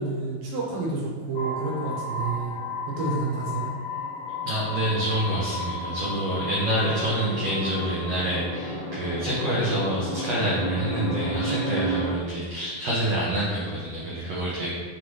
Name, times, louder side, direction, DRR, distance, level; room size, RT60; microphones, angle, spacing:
voice 1, 0.0-2.5 2.9-3.7, right 3 dB, 65° right, -4 dB, 2.6 m, -29 dB
sound 1, 1.4-12.2, left 1 dB, 75° left, 1.5 m, -32 dB
voice 2, 4.4-14.7, right 1 dB, 90° right, -7 dB, 1.4 m, -27 dB
10.0 x 3.7 x 3.2 m, 1.5 s
omnidirectional pair, 4.7 m